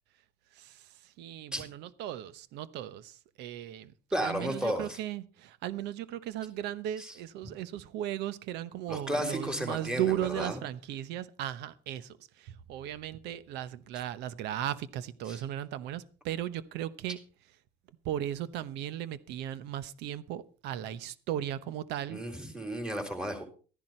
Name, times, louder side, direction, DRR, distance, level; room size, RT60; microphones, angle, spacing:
voice 1, 1.2-3.9 4.2-17.2 18.0-22.2, right 12 dB, 90° right, 1.0 m, -36 dB
voice 2, 4.1-5.0 7.0-7.1 8.9-10.6 15.3-15.4 22.1-23.4, equal, 5° right, 3.7 m, -33 dB
14.0 x 11.0 x 4.4 m
cardioid pair, 110°, 17 cm